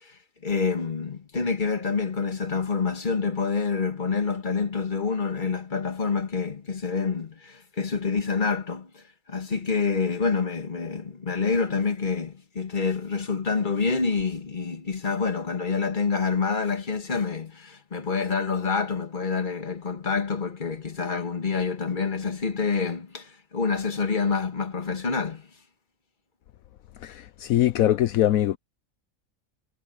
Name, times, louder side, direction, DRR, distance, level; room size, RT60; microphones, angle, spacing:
voice 1, 0.4-9.0 9.3-25.5, left 5 dB, 35° left, 1.8 m, -27 dB
voice 2, 27.0-28.6, left 13 dB, 75° left, 1.1 m, -22 dB
omnidirectional pair, 1.5 m